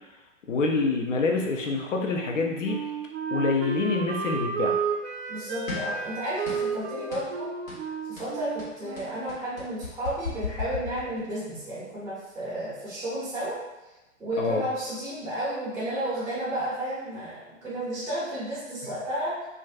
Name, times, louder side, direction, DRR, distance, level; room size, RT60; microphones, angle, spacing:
voice 1, 0.5-2.8 3.3-4.7 14.4-14.6, left 3 dB, 70° left, 1 dB, 0.6 m, -26 dB
Wind instrument woodwind instrument, 2.2-9.7, right 5 dB, 55° right, 0.5 m, -32 dB
voice 2, 5.3-7.5 8.1-13.6 14.2-19.3, right 1 dB, 5° right, -12 dB, 0.5 m, -32 dB
sound 1, 5.7-6.0 6.4-6.8 7.1-7.3 7.7-7.9 8.2-11.5, left 4 dB, 85° left, 1.2 m, -36 dB
2.4 x 2.2 x 2.4 m, 1.1 s
figure-of-eight pair, 105°, 39 cm